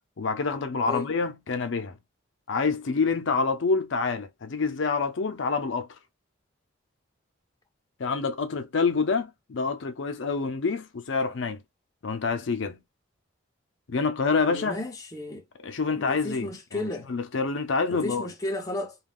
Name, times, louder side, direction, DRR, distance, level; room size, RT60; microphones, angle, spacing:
voice 1, 0.2-2.0 2.5-5.9 8.0-11.6 12.0-12.8 13.9-14.8 15.6-18.3, left 4 dB, 70° left, 0.5 m, -27 dB
voice 2, 14.5-15.4 15.9-17.1 17.9-19.0, left 2 dB, 20° left, 0.6 m, -33 dB
2.4 x 2.2 x 3.4 m
head